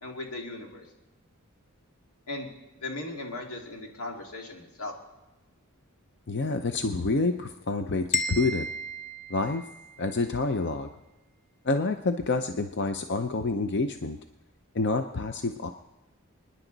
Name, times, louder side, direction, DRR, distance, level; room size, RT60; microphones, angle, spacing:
voice 1, 0.0-0.8 2.3-2.5 2.8-4.9, left 2 dB, 90° left, 1 dB, 2.3 m, -37 dB
voice 2, 6.3-8.6 9.3-9.6 10.0-10.9 11.6-14.2 14.7-15.7, left 3 dB, 55° left, 7 dB, 0.6 m, -28 dB
sound 1, 8.1-10.1, left 2 dB, 30° left, 1.1 m, -33 dB
28.0 x 10.0 x 3.9 m, 1.1 s
head